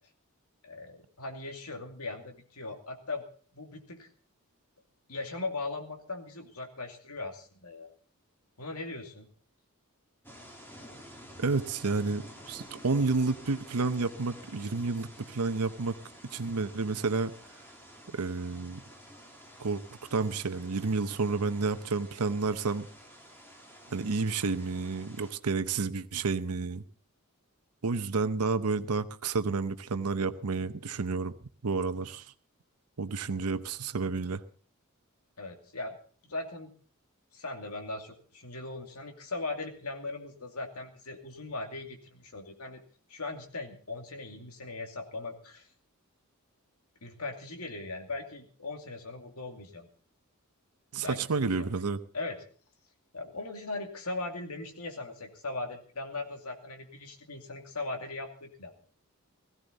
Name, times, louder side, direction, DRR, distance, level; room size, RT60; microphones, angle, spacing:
voice 1, 0.6-3.2 3.5-4.1 5.1-7.9 8.6-9.3 35.4-36.0 36.2-36.7 37.3-42.8 43.1-45.7 47.0-49.9 51.0-51.7 52.1-52.4 53.1-58.8, left 3 dB, 80° left, 4 dB, 2.6 m, -39 dB
sound 1, 10.2-25.3, equal, 10° left, 2.5 m, -51 dB
voice 2, 11.4-16.0 16.3-17.3 18.1-18.8 19.6-19.8 20.1-22.9 23.9-26.8 27.8-31.3 31.6-32.2 33.0-34.4 50.9-52.0, right 4 dB, 90° right, 12 dB, 0.8 m, -30 dB
17.0 x 15.5 x 4.0 m, 0.43 s
head